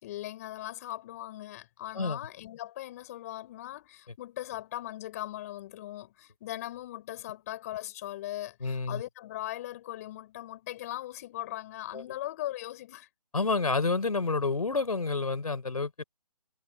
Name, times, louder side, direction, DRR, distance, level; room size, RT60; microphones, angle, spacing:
voice 1, 0.0-13.1, left 14 dB, 25° left, 5.3 m, -39 dB
voice 2, 8.6-9.0 11.9-12.0 13.3-16.0, left 3 dB, 70° left, 4.1 m, -29 dB
figure-of-eight pair, 155°, 20 cm